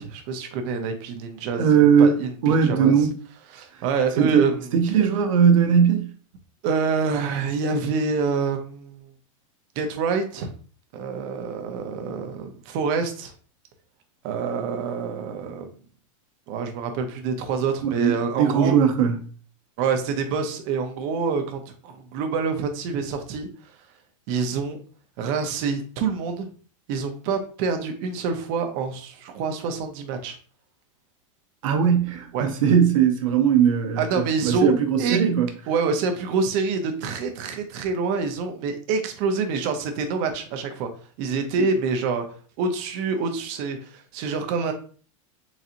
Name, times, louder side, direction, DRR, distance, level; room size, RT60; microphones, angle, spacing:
voice 1, 0.0-2.9 3.5-4.6 6.6-9.1 9.8-10.5 10.9-13.3 14.2-15.7 16.5-18.7 19.8-23.5 24.3-24.8 25.2-26.5 26.9-30.4 32.3-32.5 34.0-34.7 35.0-35.2 35.7-40.9 41.2-42.2 42.6-44.7, right 5 dB, 40° right, 0.6 m, -26 dB
voice 2, 1.6-2.2 2.4-3.1 4.2-4.5 4.7-6.1 17.8-19.2 31.6-35.5, right 7 dB, 75° right, 0.7 m, -19 dB
3.9 x 2.8 x 2.5 m
supercardioid pair, 170°, 17 cm